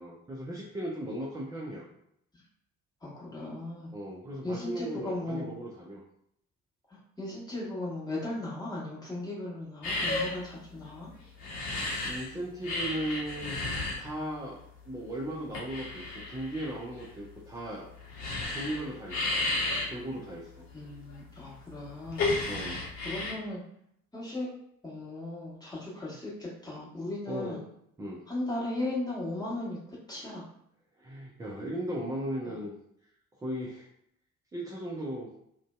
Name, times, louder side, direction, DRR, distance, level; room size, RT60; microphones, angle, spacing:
voice 1, 0.0-1.9 3.9-6.0 11.7-13.6 14.0-17.9 18.5-19.4 19.9-20.7 22.5-22.9 27.3-27.7 28.0-28.2 31.0-32.7 33.3-33.9 34.5-35.3, right 1 dB, 10° right, -4 dB, 0.3 m, -37 dB
voice 2, 3.0-3.9 4.4-5.5 6.9-11.1 20.7-22.3 23.0-23.6 24.1-24.5 24.8-27.6 28.3-30.4 32.5-32.6, left 2 dB, 10° left, -6 dB, 1.2 m, -37 dB
sound 1, 9.8-12.3 12.6-23.3, left 2 dB, 65° left, 0.8 m, -33 dB
2.5 x 2.1 x 2.3 m, 0.73 s
figure-of-eight pair, 45°, 42 cm